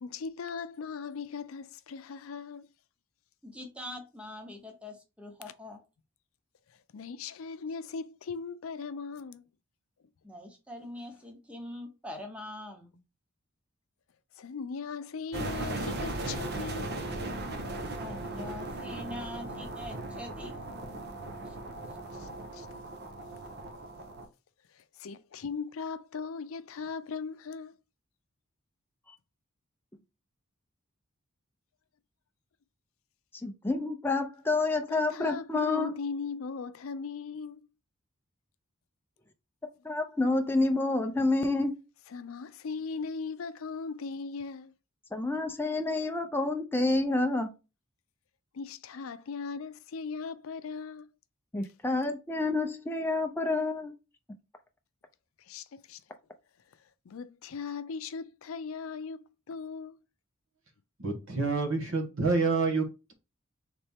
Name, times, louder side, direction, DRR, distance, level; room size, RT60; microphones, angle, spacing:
voice 1, 0.0-2.7 6.9-9.5 14.4-16.9 22.1-22.7 24.7-27.8 34.9-37.7 42.1-44.7 48.5-51.1 55.5-56.0 57.1-60.0, left 5 dB, 80° left, 0.5 m, -38 dB
voice 2, 3.4-5.8 10.2-13.0 18.0-20.6 21.4-21.7, left 1 dB, 5° right, 0.9 m, -43 dB
sound 1, 15.3-24.3, right 2 dB, 55° right, 0.8 m, -37 dB
voice 3, 33.4-36.0 39.8-41.8 45.1-47.5 51.5-53.9, left 2 dB, 10° left, 0.5 m, -28 dB
voice 4, 61.0-63.1, right 3 dB, 70° right, 1.3 m, -28 dB
4.1 x 3.3 x 3.5 m
head